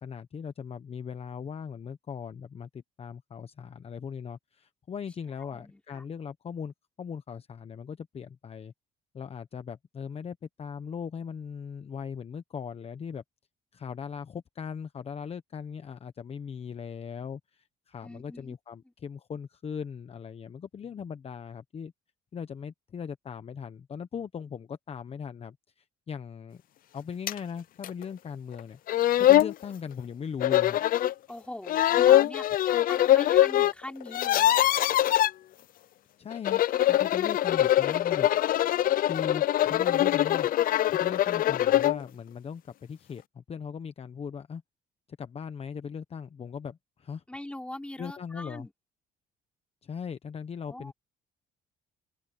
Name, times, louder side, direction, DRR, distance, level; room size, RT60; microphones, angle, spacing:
voice 1, 0.0-8.7 9.1-13.2 13.7-21.9 22.3-26.6 26.9-28.8 29.2-30.8 36.2-36.6 36.9-38.3 39.0-40.5 40.9-44.6 45.2-47.2 48.0-48.7 49.8-50.9, left 7 dB, 35° left, 1.1 m, -39 dB
voice 2, 5.4-6.0 18.0-18.5 18.8-18.9 31.3-32.4 32.9-35.2 47.3-48.7 50.7-50.9, left 1 dB, 5° left, 4.1 m, -42 dB
sound 1, 27.3-27.4 27.8-27.9 28.6-28.7 28.9-29.5 30.4-31.1 31.7-33.7 34.0-35.3 36.3-42.0, left 13 dB, 55° left, 0.6 m, -23 dB
open air
cardioid pair, 110°, 17 cm